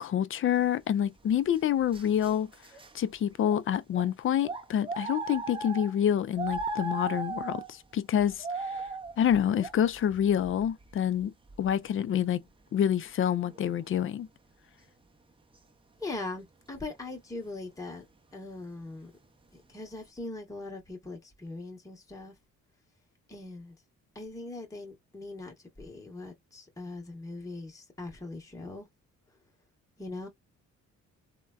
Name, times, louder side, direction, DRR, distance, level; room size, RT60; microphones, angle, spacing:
voice 1, 0.0-2.5 2.9-8.4 9.2-11.3 11.6-12.4 12.7-14.3, left 9 dB, 45° left, 0.4 m, -27 dB
sound 1, 1.3-2.9 3.4-3.6 3.9-4.1 4.4-6.0 6.4-7.7 8.2-11.2 11.5-11.9 13.5-13.6, right 3 dB, 20° right, 0.6 m, -37 dB
voice 2, 16.0-18.0 18.3-19.1 19.5-22.3 23.3-23.7 24.1-28.9 30.0-30.3, left 2 dB, 10° left, 0.9 m, -41 dB
3.2 x 2.2 x 2.3 m
cardioid pair, 90°, 30 cm